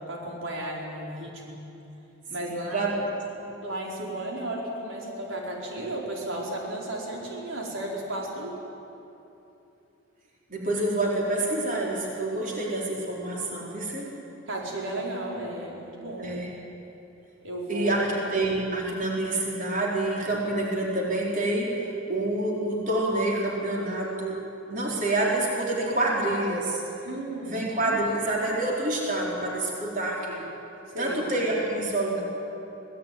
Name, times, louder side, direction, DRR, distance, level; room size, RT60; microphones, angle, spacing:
voice 1, 0.0-1.6 2.3-3.0 3.6-8.6 14.5-16.3 17.4-18.0 27.0-27.6 27.8-28.0 30.9-31.2, right 1 dB, 90° right, -2 dB, 4.9 m, -34 dB
voice 2, 2.4-3.0 3.3-3.4 10.5-14.1 16.2-16.5 17.7-24.4 24.7-26.8 27.4-30.4 31.0-32.2, right 2 dB, 40° right, -3 dB, 4.5 m, -27 dB
25.0 x 18.5 x 9.5 m, 2.9 s
head